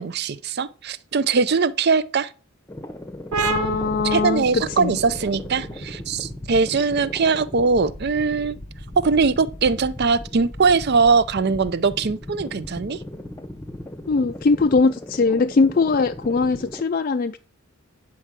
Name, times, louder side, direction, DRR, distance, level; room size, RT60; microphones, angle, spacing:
voice 1, 0.0-2.3 4.0-8.6 9.0-13.0, right 4 dB, 50° right, 0.5 m, -21 dB
sound 1, 2.7-16.8, left 1 dB, 10° left, 0.8 m, -37 dB
sound 2, 3.3-10.6, right 5 dB, 80° right, 0.8 m, -33 dB
voice 2, 3.4-5.0 14.1-17.4, left 4 dB, 40° left, 0.4 m, -21 dB
9.6 x 4.5 x 7.4 m
head